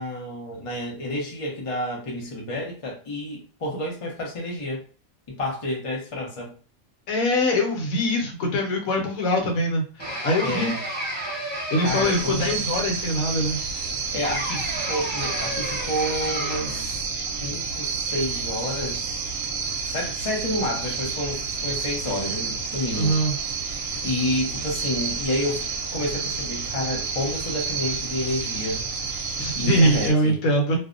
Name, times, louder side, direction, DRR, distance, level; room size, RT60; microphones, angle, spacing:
voice 1, 0.0-4.8 5.3-6.5 10.4-10.8 11.8-12.6 14.1-17.1 17.4-19.4 19.8-23.1 24.0-25.6 25.9-28.8 29.6-30.3, left 1 dB, 40° left, -1 dB, 0.4 m, -29 dB
voice 2, 7.1-10.7 11.7-13.6 22.9-23.3 29.4-30.8, equal, 70° left, 1 dB, 1.1 m, -23 dB
sound 1, 10.0-12.5 14.2-16.9, right 1 dB, 10° left, 0.9 m, -32 dB
sound 2, 11.8-30.1, right 5 dB, 70° right, 1.0 m, -30 dB
2.6 x 2.1 x 2.4 m, 0.38 s
omnidirectional pair, 1.5 m